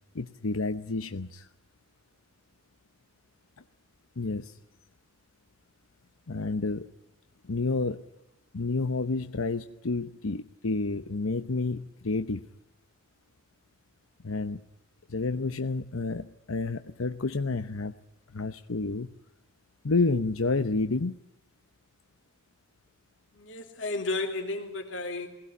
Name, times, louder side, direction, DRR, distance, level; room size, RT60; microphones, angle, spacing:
voice 1, 0.1-1.5 4.2-4.6 6.3-6.9 7.4-8.0 8.5-12.4 14.2-14.6 15.1-17.9 18.3-19.1 19.8-21.2, left 3 dB, 90° left, 9 dB, 0.9 m, -30 dB
voice 2, 23.3-25.3, left 2 dB, 65° left, 3 dB, 2.9 m, -33 dB
22.0 x 17.0 x 9.9 m, 0.91 s
head